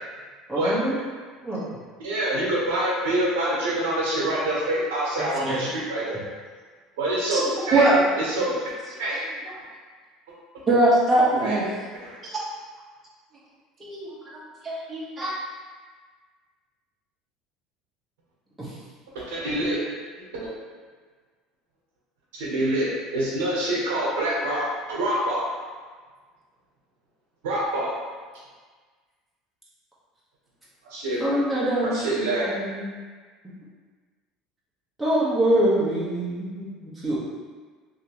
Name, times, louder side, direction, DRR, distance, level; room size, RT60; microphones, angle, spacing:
voice 1, 0.5-0.9 1.4-1.6 5.5-5.6 18.6-18.7 31.2-32.0 32.4-32.8 35.0-37.1, right 1 dB, 5° right, -9 dB, 1.2 m, -24 dB
voice 2, 2.0-6.2 7.0-7.9 8.2-8.7 9.0-9.2 11.4-11.6 12.0-12.2 19.1-19.8 20.4-20.5 22.3-25.5 27.4-27.9 30.9-31.3 31.8-32.6, right 1 dB, 85° right, -6 dB, 1.0 m, -26 dB
voice 3, 10.7-11.7 12.2-12.4 13.8-15.3, right 2 dB, 30° right, -6 dB, 1.0 m, -21 dB
3.2 x 2.9 x 2.9 m, 1.5 s
supercardioid pair, 100°, 0 cm